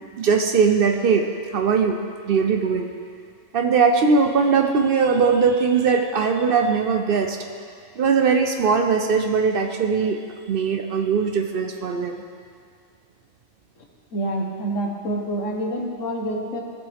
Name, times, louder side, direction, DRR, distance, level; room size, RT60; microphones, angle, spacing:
voice 1, 0.2-2.0 2.3-2.9 3.5-7.4 8.0-10.2 10.5-12.2, right 5 dB, 60° right, 5 dB, 0.7 m, -20 dB
voice 2, 14.1-16.6, right 1 dB, 85° left, 1 dB, 1.5 m, -27 dB
16.5 x 6.1 x 3.5 m, 2.2 s
omnidirectional pair, 1.3 m